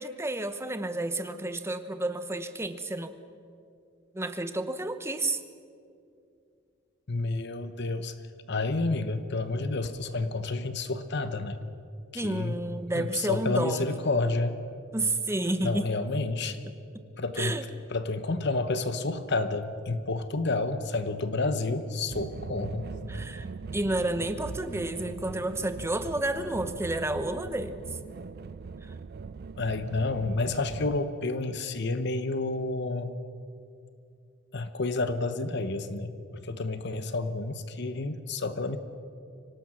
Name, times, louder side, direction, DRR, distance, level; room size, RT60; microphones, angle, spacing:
voice 1, 0.0-3.1 4.1-5.4 12.1-13.9 14.9-15.9 17.4-17.7 23.1-27.9, right 2 dB, 15° right, 10 dB, 1.0 m, -31 dB
voice 2, 7.1-8.1 8.5-11.6 12.1-12.6 12.9-14.6 15.6-16.6 17.2-17.6 17.9-22.9 29.6-33.1 34.5-38.8, left 3 dB, 60° left, 11 dB, 1.0 m, -30 dB
sound 1, 22.1-31.0, right 4 dB, 55° right, 0.4 m, -41 dB
24.5 x 18.0 x 6.3 m, 2.5 s
head